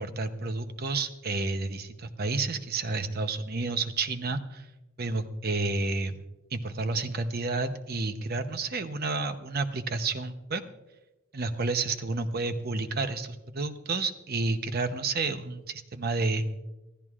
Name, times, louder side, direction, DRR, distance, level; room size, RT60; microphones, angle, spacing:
voice 1, 0.0-4.7 5.0-6.2 6.5-10.6 11.3-16.5, right 3 dB, 45° right, 9 dB, 0.8 m, -30 dB
24.5 x 14.5 x 2.4 m, 0.99 s
head